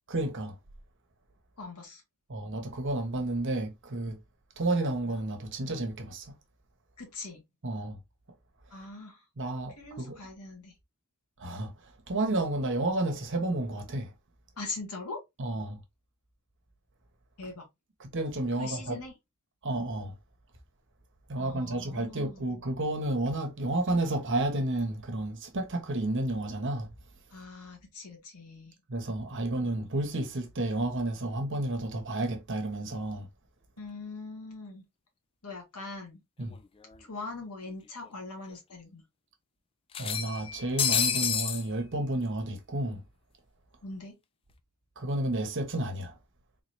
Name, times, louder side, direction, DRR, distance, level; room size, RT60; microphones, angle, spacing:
voice 1, 0.1-0.5 2.3-4.2 4.6-6.3 7.6-8.0 9.4-10.2 11.4-11.7 12.1-14.1 15.4-15.8 18.0-19.0 19.6-20.2 21.3-26.9 28.9-33.3 36.4-36.5 40.0-43.0 45.0-46.2, right 2 dB, 55° right, 1.1 m, -31 dB
voice 2, 1.6-2.0 7.0-7.4 8.7-9.2 9.8-10.7 14.6-15.2 17.4-17.7 18.6-19.2 21.4-22.4 27.3-28.7 33.8-34.8 35.4-36.2 37.0-39.0 43.8-44.2, left 3 dB, 85° left, 1.6 m, -41 dB
sound 1, 36.5-36.6 36.9-37.0 38.1-38.2 38.5-38.6 39.9-41.6, left 7 dB, 25° left, 0.3 m, -29 dB
3.9 x 3.2 x 2.6 m
head